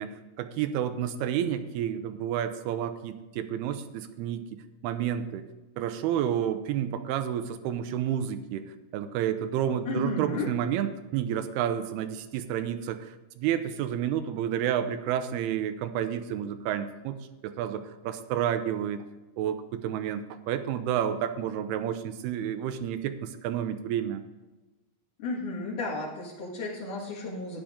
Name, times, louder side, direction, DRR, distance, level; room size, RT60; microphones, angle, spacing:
voice 1, 0.0-5.4 5.8-19.0 19.4-24.2, right 10 dB, 85° right, 10 dB, 2.7 m, -30 dB
voice 2, 9.9-10.5 25.2-27.6, left 2 dB, 60° left, -6 dB, 3.2 m, -33 dB
12.0 x 10.0 x 3.7 m, 1.2 s
omnidirectional pair, 4.5 m